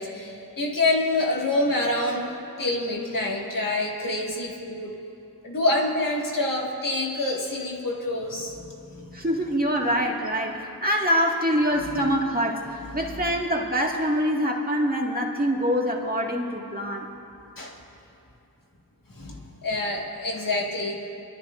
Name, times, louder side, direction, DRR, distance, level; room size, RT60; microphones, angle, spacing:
voice 1, 0.0-4.9 5.4-9.2 12.0-12.1 17.6-17.8 19.1-21.1, left 2 dB, 55° left, -1 dB, 2.0 m, -27 dB
voice 2, 9.1-17.1, equal, 25° right, -1 dB, 1.9 m, -25 dB
25.5 x 13.0 x 2.6 m, 2.8 s
cardioid pair, 50°, 38 cm